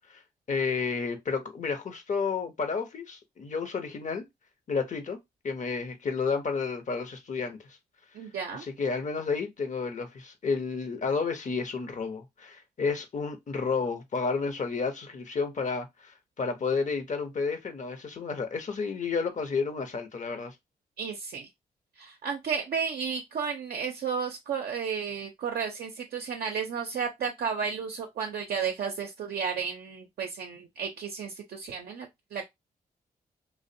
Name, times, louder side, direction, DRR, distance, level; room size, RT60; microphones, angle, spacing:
voice 1, 0.5-4.3 4.7-5.2 5.4-7.6 8.5-20.5, left 5 dB, 50° left, 0.7 m, -31 dB
voice 2, 8.1-8.7 21.0-21.5 22.0-32.5, right 6 dB, 65° right, 0.5 m, -33 dB
2.5 x 2.0 x 2.6 m
cardioid pair, 60°, 17 cm